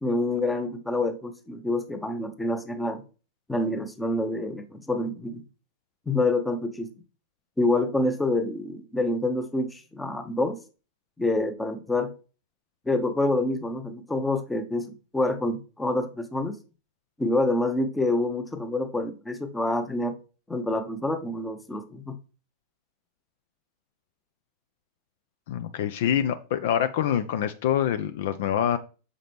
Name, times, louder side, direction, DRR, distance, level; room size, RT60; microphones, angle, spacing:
voice 1, 0.0-3.0 3.5-5.4 6.1-6.9 7.6-10.6 11.2-12.1 12.9-16.6 17.2-20.2 20.5-22.2, left 2 dB, 10° left, 0.8 m, -27 dB
voice 2, 25.5-28.8, left 9 dB, 55° left, 0.4 m, -25 dB
6.5 x 5.0 x 3.4 m
figure-of-eight pair, 90°, 0 cm